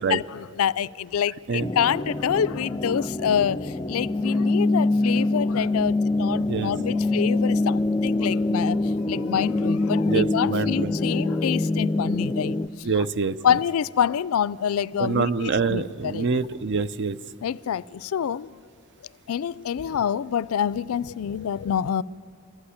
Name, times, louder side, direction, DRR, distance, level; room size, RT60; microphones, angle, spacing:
voice 1, 0.0-13.1 13.4-16.3 17.4-18.6 19.3-22.0, left 8 dB, 80° left, 0.4 m, -27 dB
sound 1, 1.6-12.7, left 2 dB, 20° left, 0.4 m, -24 dB
voice 2, 10.0-10.9 12.8-13.6 15.0-17.2, right 4 dB, 55° right, 0.5 m, -25 dB
26.0 x 11.5 x 9.9 m
head